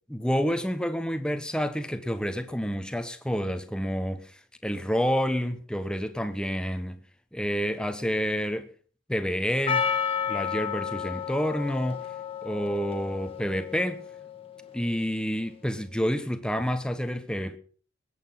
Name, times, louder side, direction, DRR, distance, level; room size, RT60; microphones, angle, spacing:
voice 1, 0.1-7.0 7.3-8.7 9.1-9.9 10.3-12.1 12.4-14.1 14.7-17.6, equal, 5° left, 1.1 m, -29 dB
Percussion, 9.7-14.6, left 7 dB, 30° left, 1.6 m, -32 dB
20.5 x 8.5 x 5.7 m
head